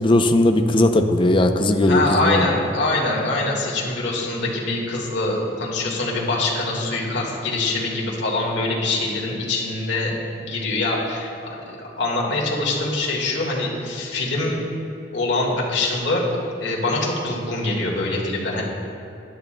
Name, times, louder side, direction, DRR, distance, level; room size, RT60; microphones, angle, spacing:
voice 1, 0.0-2.5, left 1 dB, 30° left, 6 dB, 0.5 m, -18 dB
voice 2, 1.9-14.6 15.1-16.2 16.6-18.6, left 2 dB, 75° left, -3 dB, 1.8 m, -24 dB
16.0 x 11.0 x 2.2 m, 2.7 s
head